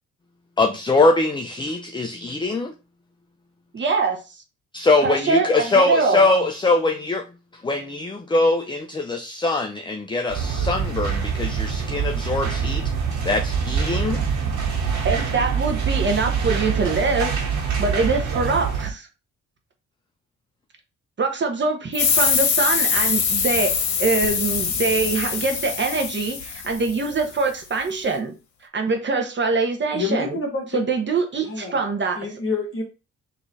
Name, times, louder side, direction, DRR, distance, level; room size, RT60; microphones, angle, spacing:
voice 1, 0.6-2.7 4.7-7.2 7.5-12.9 13.2-14.2, left 2 dB, 15° left, 5 dB, 0.5 m, -22 dB
voice 2, 3.7-4.2 5.0-6.3 15.0-17.4 17.8-19.1 21.2-23.7 24.0-28.3 28.7-30.4 30.7-32.2, right 4 dB, 40° right, 4 dB, 1.1 m, -23 dB
sound 1, 10.3-18.9, right 6 dB, 75° right, 1.7 m, -25 dB
sound 2, 21.9-27.2, left 6 dB, 70° left, 1.1 m, -23 dB
voice 3, 29.9-30.8 31.4-31.8 32.2-32.8, left 3 dB, 45° left, 0 dB, 1.3 m, -27 dB
3.8 x 3.1 x 4.0 m, 0.30 s
cardioid pair, 90°, 30 cm